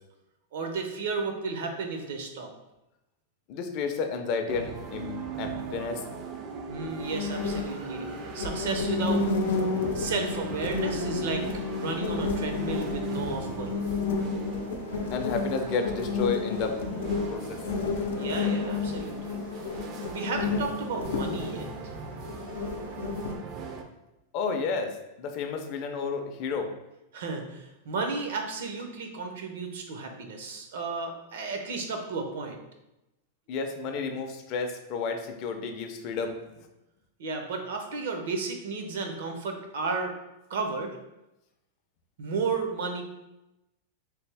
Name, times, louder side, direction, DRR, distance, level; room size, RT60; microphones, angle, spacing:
voice 1, 0.5-2.5 6.7-8.1 8.3-9.2 9.9-11.5 11.8-13.9 18.1-19.4 20.1-21.9 27.1-32.6 37.2-40.1 40.5-41.0 42.2-43.0, right 4 dB, 70° right, 4 dB, 0.6 m, -33 dB
voice 2, 3.5-6.0 15.1-16.8 17.3-17.6 17.9-18.0 24.3-26.7 33.5-36.4, left 5 dB, 35° left, 5 dB, 0.4 m, -31 dB
sound 1, 4.5-23.8, right 5 dB, 30° right, 0.3 m, -40 dB
sound 2, 7.0-23.4, left 4 dB, 90° left, 0.5 m, -31 dB
3.3 x 2.7 x 3.3 m, 0.94 s
supercardioid pair, 165°, 0 cm